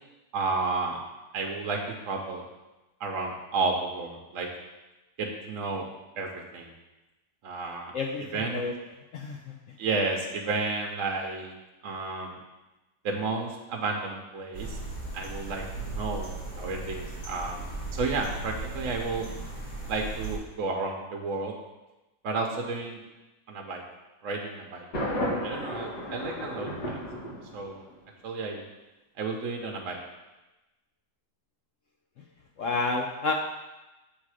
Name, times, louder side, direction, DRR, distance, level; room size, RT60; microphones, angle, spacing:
voice 1, 0.3-1.0 1.3-2.4 3.0-4.5 5.2-5.8 6.2-6.7 7.4-7.9 8.2-8.6 9.8-11.5 11.8-12.4 13.0-14.8 15.1-17.6 17.9-19.3 19.9-21.6 22.2-23.0 23.5-23.8 24.2-24.9 25.4-27.0 27.5-27.8 28.2-28.6 29.2-30.0, right 3 dB, 60° right, 1 dB, 1.0 m, -32 dB
voice 2, 9.1-9.5 32.6-33.3, left 3 dB, 65° left, 1 dB, 0.8 m, -29 dB
sound 1, 14.5-20.4, right 2 dB, 50° left, 2.6 m, -37 dB
Thunder, 24.9-27.9, left 1 dB, 85° left, 2.1 m, -33 dB
7.5 x 3.5 x 4.8 m, 1.0 s
omnidirectional pair, 1.7 m